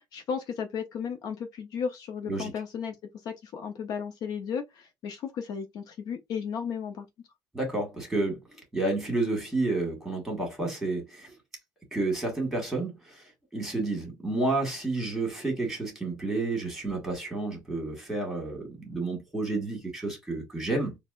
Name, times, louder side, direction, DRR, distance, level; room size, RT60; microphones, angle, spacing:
voice 1, 0.1-2.9 3.2-7.1, left 6 dB, 60° left, 0.6 m, -34 dB
voice 2, 7.5-11.3 11.9-13.2 13.5-21.0, right 2 dB, 5° right, 1.6 m, -30 dB
4.1 x 2.0 x 2.4 m
cardioid pair, 135°, 7 cm